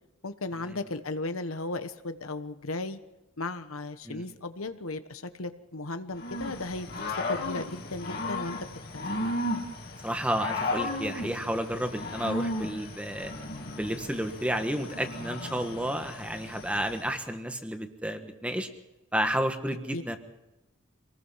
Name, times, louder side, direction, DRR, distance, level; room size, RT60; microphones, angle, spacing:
voice 1, 0.2-3.0 3.4-6.9 7.3-8.6 8.9-9.1 19.9-20.0, left 2 dB, 85° left, 9 dB, 1.3 m, -35 dB
Growling / Cricket, 6.2-17.1, left 1 dB, 45° left, 2.6 m, -35 dB
voice 2, 10.0-13.3 13.7-18.7 19.1-20.2, equal, 5° right, 6 dB, 1.4 m, -31 dB
26.0 x 19.5 x 5.8 m, 1.0 s
head